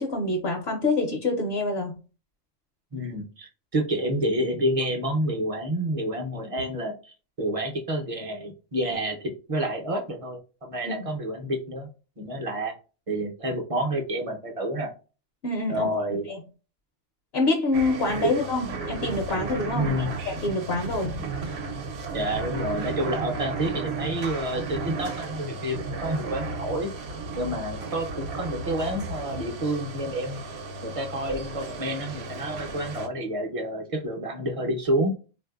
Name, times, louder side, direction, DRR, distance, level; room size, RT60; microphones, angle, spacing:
voice 1, 0.0-1.9 10.8-11.0 15.4-16.4 17.3-21.1, left 2 dB, 60° left, 2 dB, 0.9 m, -26 dB
voice 2, 2.9-11.9 12.2-12.7 13.1-14.9 15.7-16.3 18.2-18.3 19.7-20.1 22.1-26.9 27.3-30.4 30.8-35.1, right 1 dB, 40° right, 3 dB, 0.5 m, -29 dB
sound 1, 17.7-33.1, right 4 dB, 60° right, 0.8 m, -34 dB
3.6 x 2.6 x 2.3 m, 0.34 s
omnidirectional pair, 1.3 m